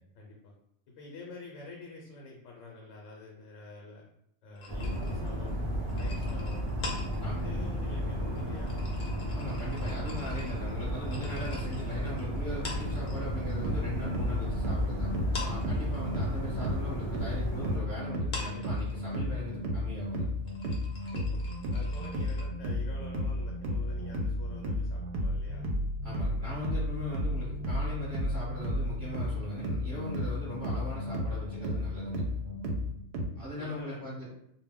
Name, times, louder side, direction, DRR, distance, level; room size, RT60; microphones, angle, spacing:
voice 1, 0.1-0.6 1.0-4.0 4.4-5.6 6.0-6.6 7.3-8.8 21.1-21.4 21.7-25.6 33.6-34.1, left 3 dB, 80° left, -1 dB, 0.9 m, -47 dB
sound 1, 4.5-13.6 13.8-14.9 15.2-22.4, left 3 dB, 50° left, 0.7 m, -45 dB
sound 2, 4.7-17.8, equal, 45° right, 0.3 m, -33 dB
voice 2, 7.2-7.5 9.3-20.3 26.0-32.2 33.3-34.3, equal, 20° right, -9 dB, 0.8 m, -39 dB
sound 3, 13.3-33.3, left 1 dB, 65° right, 0.7 m, -33 dB
2.2 x 2.1 x 3.5 m, 0.74 s
omnidirectional pair, 1.3 m